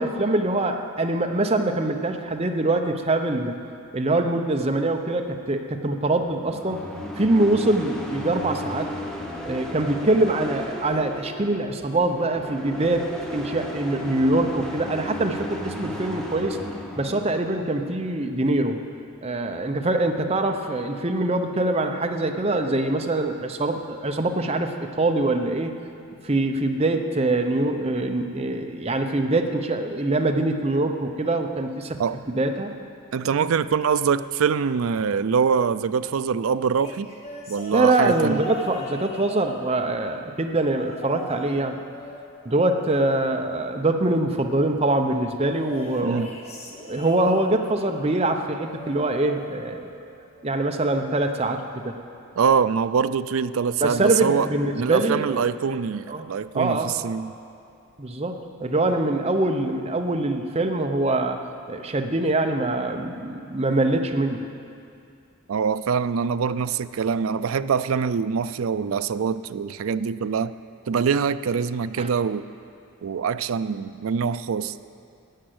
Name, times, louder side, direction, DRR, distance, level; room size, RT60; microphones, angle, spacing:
voice 1, 0.0-3.6 3.9-6.8 7.2-8.9 9.4-16.6 17.0-18.8 19.2-25.8 26.2-32.0 32.3-32.7 37.7-41.8 42.4-46.2 46.8-49.9 50.4-52.0 53.8-55.4 56.1-56.3 56.5-56.9 58.0-61.4 61.7-64.5 72.0-72.1, right 2 dB, 30° right, 4 dB, 0.8 m, -24 dB
sound 1, 6.2-17.3, equal, 5° left, 1.1 m, -34 dB
voice 2, 33.1-37.1 37.5-38.5 46.0-46.3 52.4-54.5 54.8-57.3 65.5-70.6 70.9-72.4 73.0-74.8, right 6 dB, 75° right, 13 dB, 0.4 m, -24 dB
sound 2, 36.8-40.1 40.6-41.6 41.9-43.4 45.5-47.7 48.6-50.0 50.4-50.7 51.9-52.0, left 1 dB, 30° left, 1.5 m, -40 dB
13.0 x 8.8 x 7.8 m, 2.5 s
head